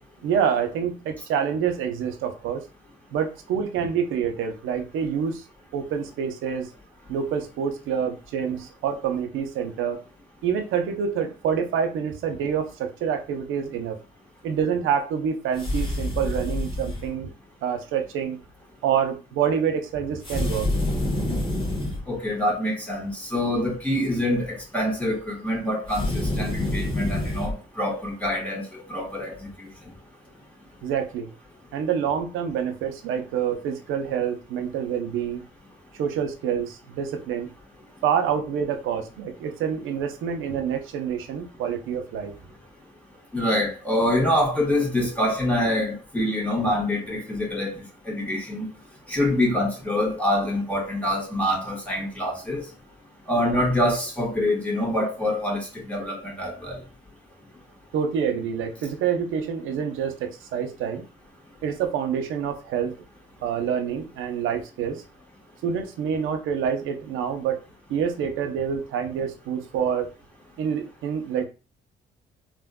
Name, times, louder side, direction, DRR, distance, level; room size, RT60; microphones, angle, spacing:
voice 1, 0.2-2.6 3.1-5.4 5.7-6.7 7.1-10.0 10.4-14.0 14.4-17.3 17.6-18.4 18.8-20.7 30.8-31.3 31.7-35.4 35.9-37.5 38.0-42.3 57.9-61.0 61.6-63.0 63.4-65.0 65.6-67.6 67.9-70.1 70.6-71.5, right 7 dB, 85° right, 0.6 m, -27 dB
sound 1, 15.6-17.1 20.2-22.0 25.9-27.5, left 1 dB, 25° left, 1.2 m, -27 dB
voice 2, 22.1-29.4 43.3-48.7 49.1-52.6 53.3-56.8, left 1 dB, 5° left, 1.3 m, -25 dB
3.5 x 2.5 x 2.2 m
cardioid pair, 90°, 20 cm